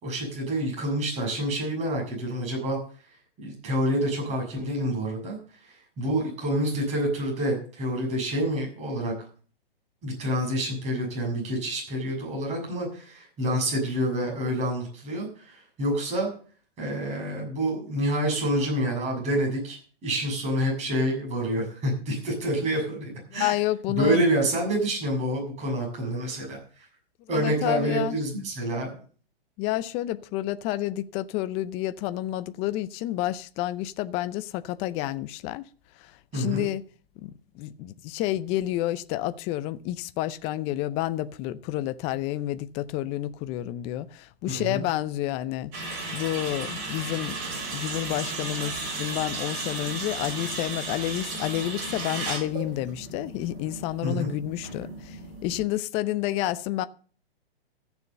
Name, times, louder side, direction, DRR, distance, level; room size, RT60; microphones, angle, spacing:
voice 1, 0.0-2.8 3.4-9.1 10.0-16.3 16.8-23.6 24.0-26.9 27.3-28.9 36.3-36.7 44.5-44.8 54.0-54.3, right 1 dB, 20° right, 6.8 m, -28 dB
voice 2, 23.3-24.2 27.3-28.2 29.6-35.6 36.0-36.8 37.2-47.4 47.7-56.8, left 14 dB, 20° left, 0.5 m, -30 dB
sound 1, 45.7-55.6, right 3 dB, 35° right, 6.5 m, -35 dB
14.5 x 7.0 x 6.7 m
hypercardioid pair, 135°, 31 cm